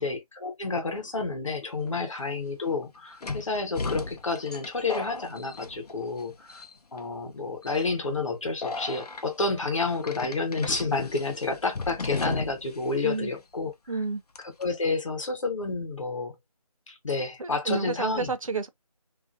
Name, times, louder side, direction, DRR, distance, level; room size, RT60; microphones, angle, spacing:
voice 1, 0.0-6.6 6.9-13.7 14.6-16.3 16.9-18.3, left 3 dB, 55° left, 0.9 m, -30 dB
sound 1, 1.9-2.0 3.2-6.2 6.5-7.0 7.6-7.9 8.6-9.2 10.0-12.8 13.0-13.1 14.3-14.6, left 3 dB, 75° left, 0.6 m, -35 dB
voice 2, 13.9-14.2 17.4-18.7, right 4 dB, 55° right, 0.5 m, -30 dB
2.4 x 2.1 x 2.4 m
figure-of-eight pair, 165°, 20 cm